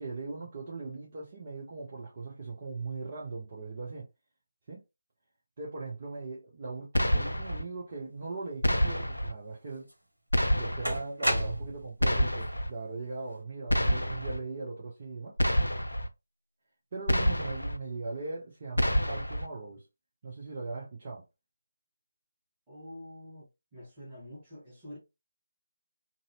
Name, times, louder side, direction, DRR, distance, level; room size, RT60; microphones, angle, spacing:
voice 1, 0.0-4.1 4.7-4.8 5.6-9.9 10.5-15.4 16.9-19.8 20.2-21.3, right 3 dB, 35° right, 0.7 m, -39 dB
sound 1, 6.9-7.6 8.6-9.3 10.3-11.0 12.0-12.7 13.7-14.4 15.4-16.1 17.1-17.8 18.8-19.5, equal, 80° left, 0.4 m, -27 dB
sound 2, 9.9-10.0 10.8-12.0, equal, 80° right, 0.9 m, -30 dB
voice 2, 22.7-23.5 23.7-25.0, left 1 dB, 15° right, 1.3 m, -46 dB
2.6 x 2.0 x 2.7 m
figure-of-eight pair, 155°, 0 cm